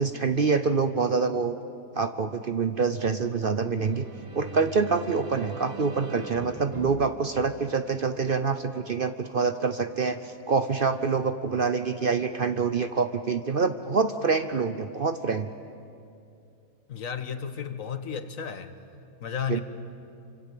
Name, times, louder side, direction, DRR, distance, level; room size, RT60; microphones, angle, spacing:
voice 1, 0.0-1.5 1.9-4.1 4.3-15.5 19.5-19.6, right 5 dB, 45° right, 10 dB, 0.8 m, -26 dB
sound 1, 3.7-8.4, right 3 dB, 25° right, 1.0 m, -41 dB
voice 2, 16.9-18.7 19.2-19.6, left 7 dB, 70° left, 10 dB, 1.6 m, -33 dB
27.5 x 25.0 x 7.6 m, 2.6 s
omnidirectional pair, 1.5 m